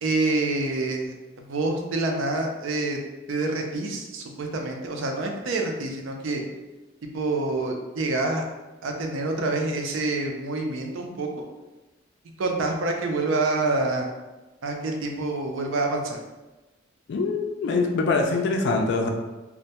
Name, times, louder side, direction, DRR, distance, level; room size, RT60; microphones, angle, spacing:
voice 1, 0.0-1.1 1.5-3.0 3.3-6.4 7.1-8.5 8.8-11.4 12.4-14.1 14.6-16.2, right 2 dB, 75° right, 2 dB, 0.4 m, -27 dB
voice 2, 17.1-19.1, left 3 dB, 60° left, 3 dB, 0.3 m, -24 dB
2.1 x 2.1 x 2.8 m, 1.1 s
head